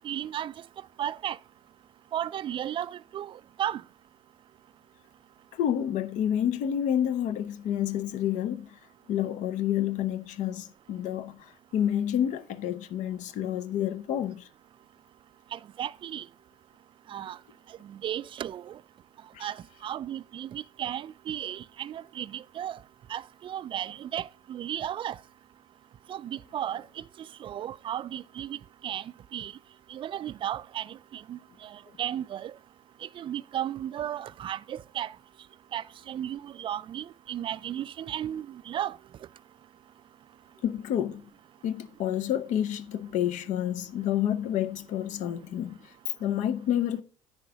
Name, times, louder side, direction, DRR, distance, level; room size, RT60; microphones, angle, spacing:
voice 1, 0.0-0.5 1.0-1.4 2.1-3.8 15.5-16.3 17.1-17.4 17.8-18.8 19.4-22.8 23.1-25.2 26.1-27.0 27.4-28.6 28.8-29.5 29.9-32.5 33.0-35.2 35.7-39.0, right 10 dB, 35° right, 0.4 m, -35 dB
voice 2, 5.5-8.8 9.1-11.4 11.7-14.5 19.3-19.5 40.6-41.2 41.6-45.8 46.2-47.0, left 10 dB, 55° left, 0.7 m, -29 dB
9.8 x 3.7 x 6.3 m
hypercardioid pair, 65°, 15 cm